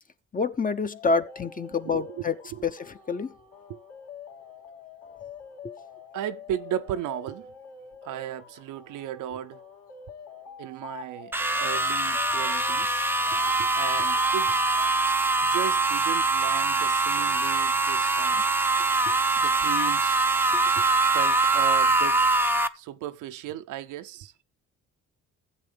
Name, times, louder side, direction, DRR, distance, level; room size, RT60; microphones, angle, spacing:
voice 1, 0.3-2.4 2.6-2.8 3.1-3.3 5.6-5.7 20.5-20.6, left 4 dB, 25° left, 0.9 m, -27 dB
sound 1, 0.9-14.9, left 5 dB, 60° left, 2.6 m, -46 dB
voice 2, 1.9-2.2 2.5-2.6 3.7-3.8 6.1-7.5 8.0-9.6 10.6-14.6 15.4-18.4 19.1-20.2 20.8-20.9 21.1-22.3 22.7-24.3, right 11 dB, 85° right, 0.7 m, -35 dB
sound 2, 11.3-22.7, right 3 dB, 5° right, 0.6 m, -23 dB
14.5 x 7.9 x 3.4 m
cardioid pair, 90°, 30 cm